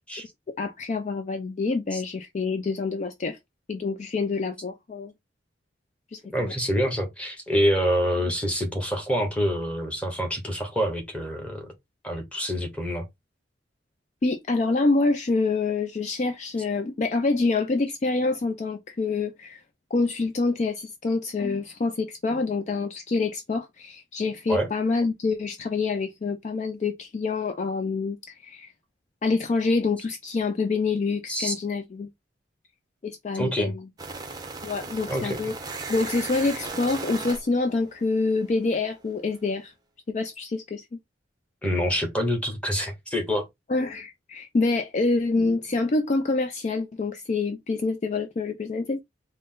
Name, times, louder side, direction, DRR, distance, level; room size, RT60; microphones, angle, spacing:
voice 1, 0.6-3.4 3.7-5.1 6.1-6.5 14.2-19.6 19.9-28.2 28.4-28.7 29.2-32.1 33.0-33.7 34.6-35.5 35.9-39.7 40.1-40.8 43.7-49.0, left 3 dB, 40° left, 0.4 m, -26 dB
voice 2, 6.3-11.7 12.0-13.1 24.5-24.7 31.3-31.5 33.3-33.7 35.1-35.5 41.6-43.5, equal, 5° left, 1.0 m, -26 dB
sound 1, 34.0-38.8, right 3 dB, 20° right, 0.6 m, -37 dB
3.9 x 2.0 x 3.5 m
head